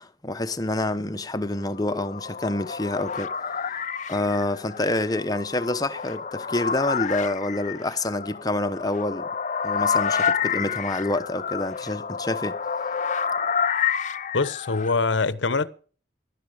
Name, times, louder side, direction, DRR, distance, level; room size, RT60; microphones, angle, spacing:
voice 1, 0.0-3.3 3.6-3.8 4.1-9.3 9.6-12.6, left 2 dB, 20° left, 1.0 m, -27 dB
sound 1, 1.5-15.0, left 7 dB, 40° left, 0.6 m, -29 dB
voice 2, 14.3-15.7, left 4 dB, 80° left, 0.9 m, -23 dB
16.5 x 12.0 x 5.1 m
head